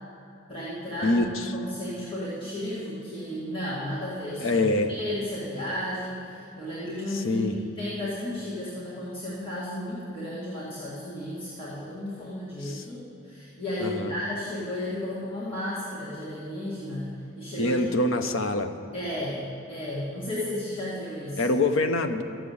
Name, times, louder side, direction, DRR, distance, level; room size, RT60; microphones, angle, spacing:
voice 1, 0.5-1.2 1.5-7.5 7.8-17.8 18.9-19.4 19.7-21.6, left 1 dB, 25° left, -9 dB, 2.0 m, -33 dB
voice 2, 1.0-1.5 4.4-4.9 7.1-7.5 12.6-12.9 13.8-14.1 17.6-18.7 21.4-22.2, left 2 dB, 80° left, 7 dB, 0.8 m, -25 dB
13.0 x 7.5 x 8.5 m, 2.7 s
head